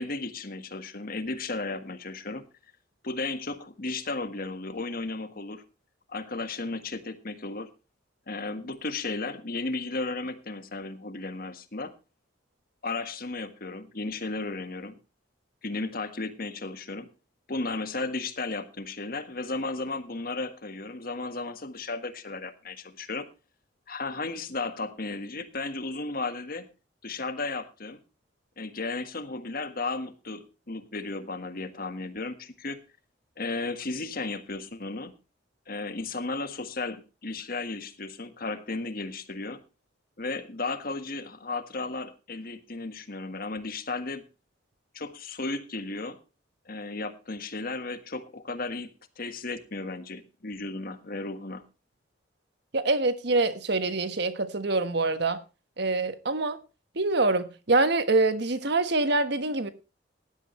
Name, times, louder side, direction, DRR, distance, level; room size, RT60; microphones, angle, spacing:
voice 1, 0.0-2.4 3.0-5.6 6.1-7.7 8.3-11.9 12.8-14.9 15.6-17.1 17.5-23.3 23.9-26.7 27.0-28.0 28.6-32.8 33.4-35.1 35.7-39.6 40.2-44.2 44.9-46.2 46.6-48.9 49.2-51.6, left 3 dB, 50° left, 1.5 m, -34 dB
voice 2, 52.7-55.4 55.8-56.6 56.9-59.7, right 3 dB, 65° right, 1.4 m, -25 dB
16.5 x 11.5 x 3.2 m
head